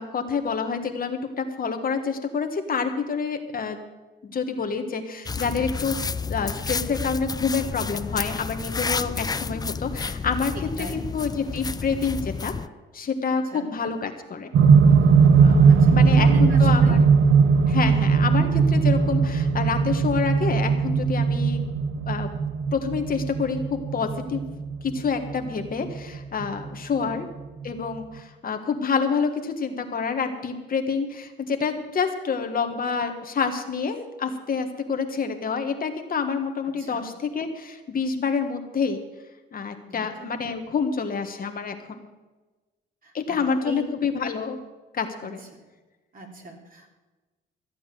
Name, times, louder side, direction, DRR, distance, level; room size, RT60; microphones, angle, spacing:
voice 1, 0.0-3.8 4.2-12.5 12.9-14.5 15.4-17.0 17.7-21.6 22.1-22.3 22.7-24.4 24.8-27.3 27.6-39.0 39.5-42.1 43.1-44.6 44.9-45.4, left 5 dB, 45° left, 6 dB, 1.5 m, -28 dB
sound 1, 5.3-12.7, left 5 dB, 20° left, 0.4 m, -31 dB
sound 2, 14.5-26.7 27.6-27.7, right 5 dB, 80° right, 1.1 m, -19 dB
voice 2, 15.7-17.0 27.0-27.1 36.8-37.0 39.9-40.3 43.0-43.8 45.2-45.3 46.1-47.0, right 3 dB, 45° right, 1 dB, 3.4 m, -38 dB
14.5 x 8.6 x 7.5 m, 1.2 s
cardioid pair, 90°, 20 cm